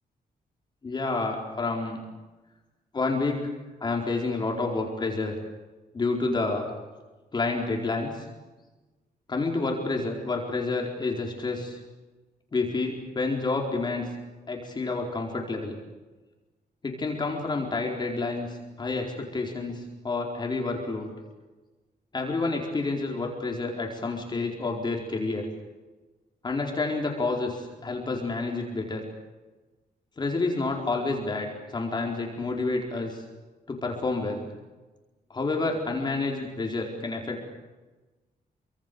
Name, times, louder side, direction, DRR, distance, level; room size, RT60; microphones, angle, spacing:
voice 1, 0.8-2.0 2.9-3.5 3.8-5.4 5.9-6.7 7.3-8.2 9.3-11.8 12.5-14.1 14.5-15.8 16.8-21.1 22.1-25.5 26.4-29.0 30.2-33.2 33.7-34.5 35.3-37.5, left 3 dB, 25° left, 0 dB, 4.5 m, -29 dB
29.5 x 25.5 x 7.1 m, 1.2 s
wide cardioid pair, 175°, 16 cm